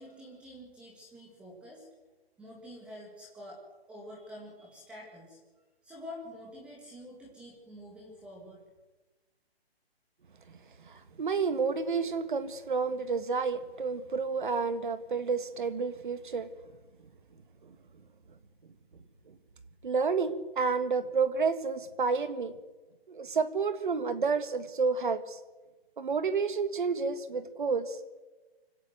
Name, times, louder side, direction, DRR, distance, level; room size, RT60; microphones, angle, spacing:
voice 1, 0.0-1.9 2.4-3.6 3.9-5.4 5.8-8.6, left 1 dB, 5° right, -3 dB, 1.9 m, -47 dB
voice 2, 10.8-16.5 17.6-17.7 19.3-19.4 19.8-22.6 23.1-25.4 26.0-28.0, right 5 dB, 50° right, 12 dB, 1.9 m, -30 dB
25.0 x 17.0 x 7.9 m, 1.2 s
hypercardioid pair, 175°, 31 cm